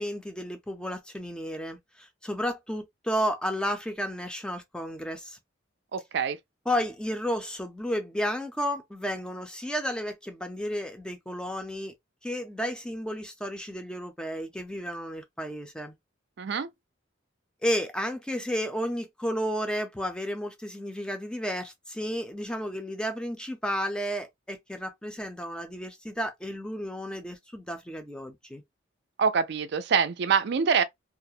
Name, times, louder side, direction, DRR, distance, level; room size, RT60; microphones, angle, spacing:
voice 1, 0.0-5.4 6.7-11.9 12.2-16.0 17.6-28.6, equal, 5° left, 0.4 m, -32 dB
voice 2, 5.9-6.4 16.4-16.7 29.2-30.8, right 6 dB, 60° right, 0.4 m, -25 dB
2.4 x 2.1 x 2.7 m
head